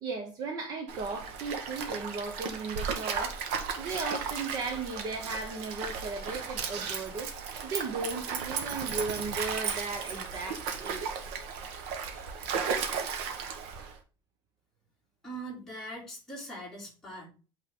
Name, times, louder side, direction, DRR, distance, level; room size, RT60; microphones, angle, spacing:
voice 1, 0.0-3.4 3.8-7.3 7.6-11.3, right 3 dB, 40° right, 1.0 m, -36 dB
Stream, 0.9-14.0, right 6 dB, 80° right, 1.3 m, -35 dB
voice 2, 15.2-17.3, right 1 dB, 5° left, 2.9 m, -41 dB
8.5 x 3.8 x 3.7 m
cardioid pair, 180°, 10 cm